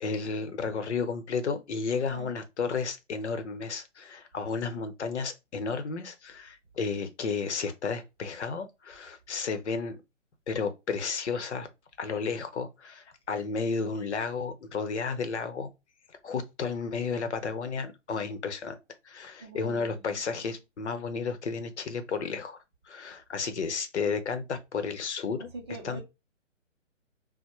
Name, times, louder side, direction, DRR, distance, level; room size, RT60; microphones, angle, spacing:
voice 1, 0.0-10.0 10.5-11.7 12.0-15.7 16.2-18.7 19.0-22.6 22.9-25.5 25.8-26.0, left 5 dB, 60° left, 0.8 m, -32 dB
voice 2, 19.4-20.2 25.5-26.0, right 2 dB, 20° right, 0.5 m, -43 dB
4.1 x 2.1 x 3.0 m
figure-of-eight pair, 140°, 38 cm